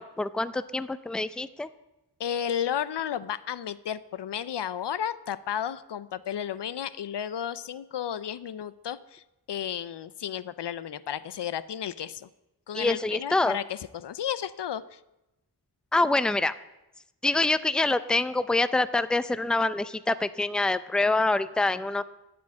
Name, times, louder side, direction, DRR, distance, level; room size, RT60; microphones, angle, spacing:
voice 1, 0.0-1.7 12.7-13.6 15.9-16.5 17.2-22.0, left 2 dB, ahead, 14 dB, 0.5 m, -25 dB
voice 2, 2.2-12.3 12.7-15.0, left 9 dB, 90° left, 16 dB, 0.5 m, -33 dB
13.0 x 5.1 x 8.4 m, 0.95 s
wide cardioid pair, 45°, 41 cm